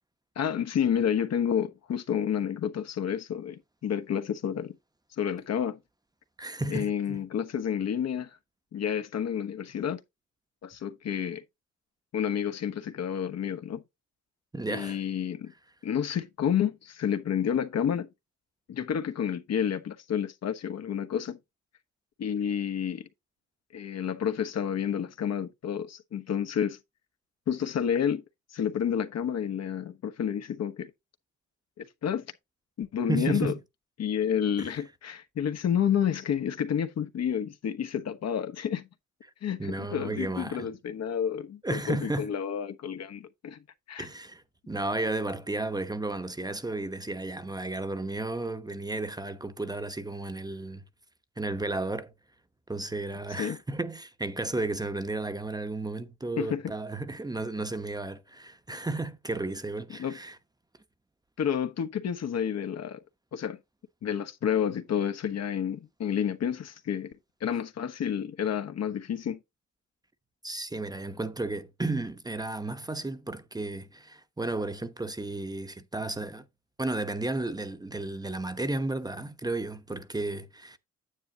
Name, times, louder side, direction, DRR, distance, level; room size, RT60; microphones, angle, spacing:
voice 1, 0.4-4.8 5.2-5.8 6.7-8.3 8.7-10.0 10.6-11.4 12.1-13.8 14.7-15.5 15.8-18.1 18.7-21.4 22.2-23.1 23.7-26.8 27.5-28.2 28.5-30.9 31.8-32.3 32.8-33.5 34.0-38.9 39.4-43.6 43.9-44.1 53.4-53.6 56.4-56.6 60.0-60.2 61.4-63.0 63.3-63.6 64.0-67.1 67.4-69.4, left 8 dB, 60° left, 1.2 m, -30 dB
voice 2, 6.4-7.2 14.5-15.0 33.1-33.6 34.6-34.7 39.6-40.7 41.6-42.3 44.0-50.8 51.4-52.1 52.7-60.4 70.4-76.5 76.8-80.8, right 2 dB, 15° right, 0.9 m, -33 dB
9.6 x 8.0 x 2.8 m
cardioid pair, 90°, 30 cm